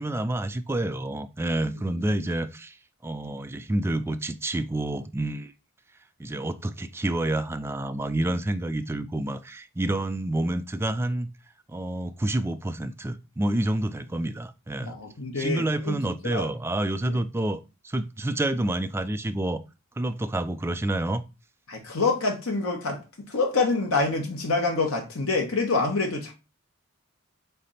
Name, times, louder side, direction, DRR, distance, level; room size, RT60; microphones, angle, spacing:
voice 1, 0.0-2.8 3.0-5.5 6.2-11.3 11.7-15.0 15.3-19.6 20.0-21.2, right 1 dB, 10° right, 0.3 m, -28 dB
voice 2, 14.8-16.0 16.2-16.5 17.1-17.2 21.7-23.0 23.3-26.3, left 3 dB, 85° left, 1.1 m, -26 dB
3.8 x 3.4 x 4.0 m
head